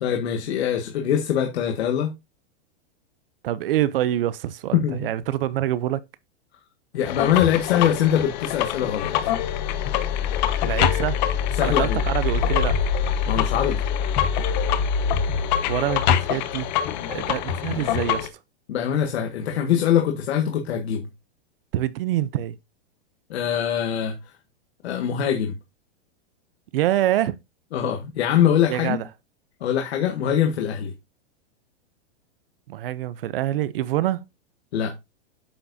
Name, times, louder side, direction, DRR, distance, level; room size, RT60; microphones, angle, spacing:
voice 1, 0.0-2.1 4.7-5.1 6.9-9.3 11.6-12.0 13.3-13.8 17.7-17.8 18.7-21.1 23.3-24.1 24.8-25.5 27.7-29.0 29.6-30.9 34.7-34.9, left 9 dB, 70° left, 1.7 m, -23 dB
voice 2, 3.4-6.0 10.6-11.2 11.6-12.8 15.7-16.7 17.1-18.3 21.7-22.6 26.7-27.4 28.7-29.1 32.7-34.2, right 13 dB, 55° right, 0.6 m, -25 dB
sound 1, 7.1-18.3, left 8 dB, 40° left, 1.1 m, -24 dB
8.8 x 7.0 x 2.7 m
supercardioid pair, 165°, 33 cm